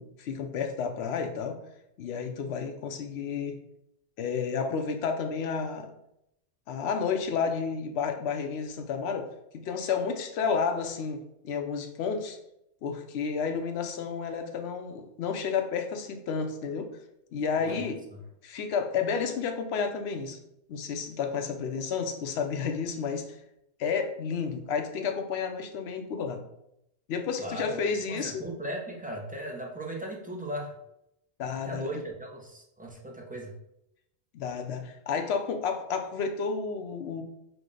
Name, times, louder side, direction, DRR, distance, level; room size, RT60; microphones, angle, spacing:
voice 1, 0.0-1.6 2.0-3.6 4.2-5.9 6.7-9.3 9.5-12.4 12.8-16.9 17.3-18.1 18.4-20.4 20.7-23.4 23.8-26.4 27.1-28.4 31.4-32.0 34.3-37.2, left 6 dB, 70° left, 5 dB, 0.8 m, -31 dB
voice 2, 27.4-30.7 31.7-33.5, right 1 dB, 15° right, -1 dB, 0.3 m, -37 dB
4.9 x 2.1 x 3.8 m, 0.80 s
omnidirectional pair, 1.2 m